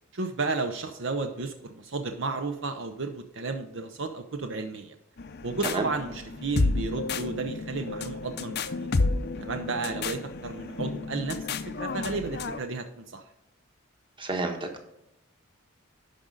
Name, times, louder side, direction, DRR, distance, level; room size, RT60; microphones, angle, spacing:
voice 1, 0.1-4.9 5.4-8.9 9.4-13.2, right 3 dB, 65° right, 7 dB, 0.7 m, -33 dB
sound 1, 5.2-12.6, left 3 dB, 50° left, 0.6 m, -31 dB
voice 2, 14.2-14.9, right 2 dB, 25° right, 4 dB, 1.3 m, -30 dB
12.0 x 5.1 x 3.8 m, 0.86 s
head